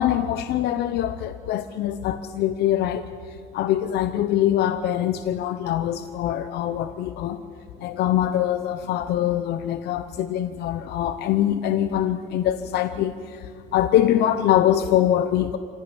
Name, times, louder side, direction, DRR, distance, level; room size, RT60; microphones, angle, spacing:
voice 1, 0.0-3.0 3.5-7.4 7.8-13.4 13.7-15.6, left 11 dB, 75° left, 11 dB, 0.9 m, -23 dB
26.0 x 16.5 x 9.7 m, 2.2 s
cardioid pair, 110°, 17 cm